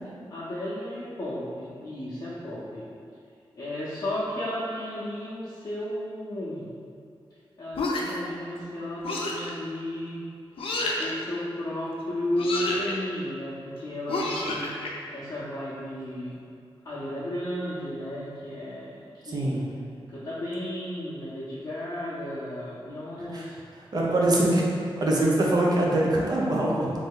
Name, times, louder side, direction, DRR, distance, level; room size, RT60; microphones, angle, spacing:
voice 1, 0.3-2.8 3.6-6.6 7.6-10.2 11.0-14.7 15.1-16.4 16.8-19.5 20.1-23.6, left 1 dB, 45° left, -10 dB, 0.6 m, -33 dB
sound 1, 7.7-8.3 9.0-9.5 10.6-11.1 12.4-12.9 14.1-14.9, left 2 dB, 85° left, 0.5 m, -29 dB
voice 2, 19.2-19.6 23.2-23.5 23.9-24.7 25.0-26.9, right 1 dB, 45° right, -4 dB, 0.6 m, -23 dB
3.1 x 2.6 x 3.7 m, 2.4 s
wide cardioid pair, 150°, 9 cm